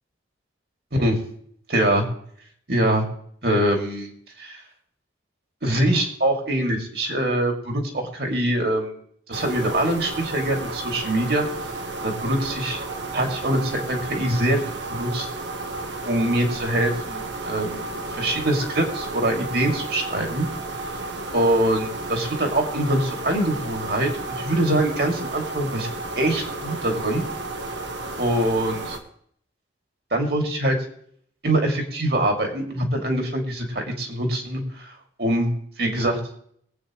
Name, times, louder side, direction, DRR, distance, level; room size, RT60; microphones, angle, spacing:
voice 1, 1.7-2.0 2.7-3.0 3.4-4.1 4.4-4.6 5.6-8.9 9.3-11.4 12.0-12.8 13.1-14.6 14.9-15.3 16.0-20.5 21.3-25.9 26.2-27.2 28.2-29.0 30.1-30.8 31.4-34.9 35.2-35.5 35.8-36.2, right 1 dB, 55° right, 2 dB, 2.6 m, -23 dB
sound 1, 9.3-29.0, right 2 dB, 75° right, 1.5 m, -33 dB
22.5 x 8.7 x 3.2 m, 0.64 s
head